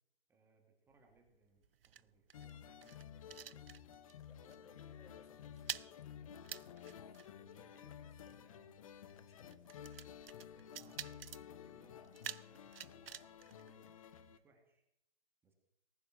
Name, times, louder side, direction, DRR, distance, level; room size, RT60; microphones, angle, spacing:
voice 1, 0.3-3.5 10.7-14.8 15.4-15.5, right 2 dB, 5° right, 2 dB, 1.8 m, -70 dB
sound 1, 0.9-4.2 4.5-4.8 5.0-14.4, right 9 dB, 65° right, 0.7 m, -51 dB
sound 2, 2.3-14.4, left 9 dB, 35° left, 0.9 m, -53 dB
sound 3, 3.0-10.0, right 1 dB, 15° left, 1.2 m, -74 dB
voice 2, 4.3-6.4 7.3-10.0, left 4 dB, 65° left, 8 dB, 3.8 m, -66 dB
19.0 x 10.5 x 6.2 m, 0.79 s
hypercardioid pair, 155°, 31 cm